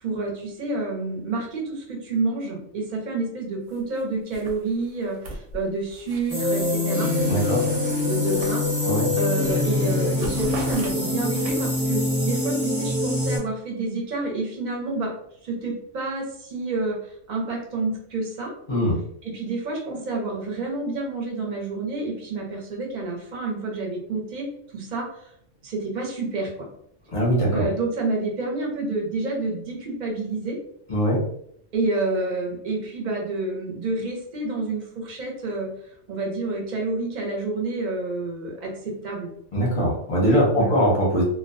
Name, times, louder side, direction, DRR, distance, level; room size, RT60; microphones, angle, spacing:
voice 1, 0.0-7.1 8.0-8.9 9.2-15.1 15.4-18.5 19.2-24.5 24.7-25.3 25.6-26.7 27.5-30.6 31.7-35.7 36.1-39.3 40.5-40.7, right 3 dB, 45° right, -1 dB, 0.7 m, -29 dB
sound 1, 3.7-4.0 4.3-6.8 7.2-9.1 9.4-9.6 9.9-11.9, right 2 dB, 80° right, 0.9 m, -40 dB
sound 2, 6.3-13.4, left 2 dB, 15° right, 0.8 m, -24 dB
voice 2, 7.3-7.7 8.8-9.1 18.7-19.0 27.1-27.6 30.9-31.2 39.5-41.2, equal, 35° left, -5 dB, 0.6 m, -21 dB
2.3 x 2.1 x 2.5 m, 0.68 s
omnidirectional pair, 1.3 m